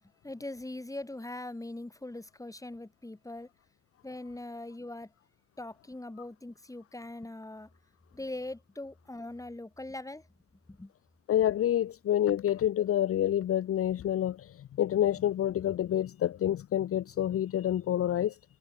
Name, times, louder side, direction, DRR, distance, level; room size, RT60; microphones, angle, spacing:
voice 1, 0.2-3.5 4.0-5.1 5.6-7.7 8.1-10.2 10.7-10.9, left 2 dB, 10° left, 4.1 m, -41 dB
voice 2, 11.3-18.4, left 11 dB, 50° left, 0.7 m, -28 dB
cardioid pair, 90°, 30 cm